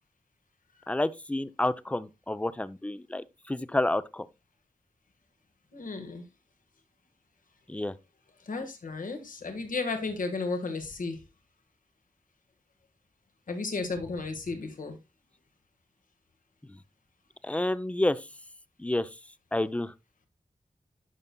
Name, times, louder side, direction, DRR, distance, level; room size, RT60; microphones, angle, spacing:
voice 1, 0.9-4.3 7.7-7.9 16.7-16.8 17.4-18.3 18.8-19.1 19.5-19.9, left 1 dB, 10° left, 0.5 m, -29 dB
voice 2, 5.7-6.2 8.4-11.2 13.5-15.0, left 3 dB, 75° left, 1.5 m, -33 dB
11.0 x 5.3 x 2.2 m
cardioid pair, 65°, 14 cm